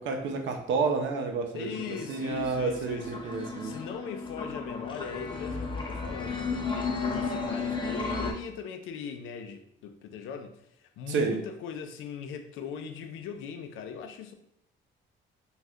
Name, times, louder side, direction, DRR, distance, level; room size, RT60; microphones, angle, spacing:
voice 1, 0.0-1.7 2.1-3.7 11.1-11.4, right 4 dB, 70° right, 0.6 m, -30 dB
voice 2, 1.5-3.2 3.6-14.3, left 6 dB, 85° left, 0.4 m, -40 dB
sound 1, 1.5-8.3, left 4 dB, 25° left, 0.5 m, -34 dB
2.6 x 2.3 x 3.4 m
cardioid pair, 90°, 20 cm